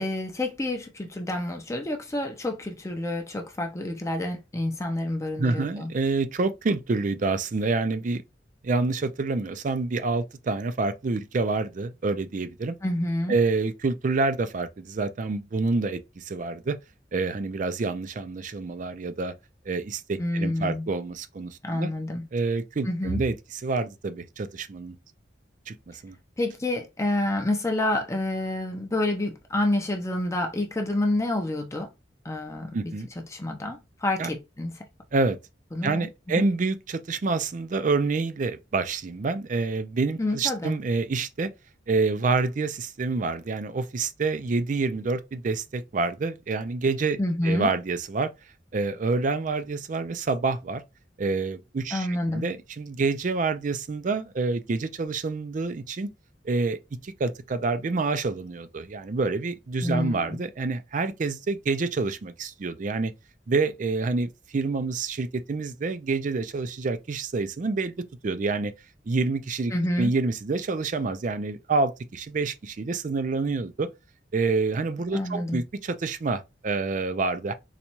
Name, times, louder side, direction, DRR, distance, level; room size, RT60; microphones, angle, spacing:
voice 1, 0.0-5.9 12.8-13.4 20.2-20.9 21.6-22.3 22.8-23.2 26.4-31.9 32.2-32.9 33.3-34.8 35.7-36.1 36.4-36.5 40.2-40.7 47.2-47.7 51.9-52.4 59.8-60.4 69.7-70.1 75.1-75.6, left 1 dB, 15° left, 0.5 m, -28 dB
voice 2, 5.4-8.2 8.6-12.8 13.3-16.8 17.1-19.3 19.7-21.9 22.3-25.0 25.7-26.2 32.7-33.1 34.2-34.3 35.1-35.4 35.8-41.5 41.9-47.2 47.4-48.3 48.7-50.8 51.2-56.1 56.4-56.8 57.0-63.1 63.5-67.9 68.2-68.7 69.1-69.7 70.0-73.9 74.3-77.5, right 3 dB, 45° right, 0.4 m, -27 dB
4.0 x 2.3 x 2.9 m
head